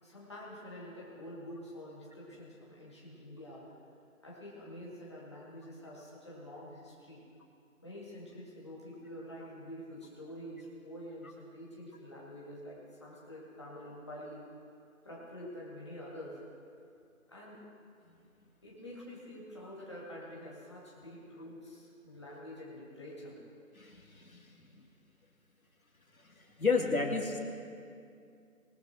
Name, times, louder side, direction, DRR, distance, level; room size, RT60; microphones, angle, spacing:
voice 1, 0.0-3.7 4.2-7.2 7.8-14.5 15.0-16.4 17.3-17.6 18.6-23.4, equal, 20° left, -6 dB, 2.3 m, -47 dB
voice 2, 23.8-24.5 26.6-27.4, left 4 dB, 75° left, 1 dB, 2.6 m, -31 dB
22.5 x 7.8 x 4.5 m, 2.5 s
figure-of-eight pair, 175°, 42 cm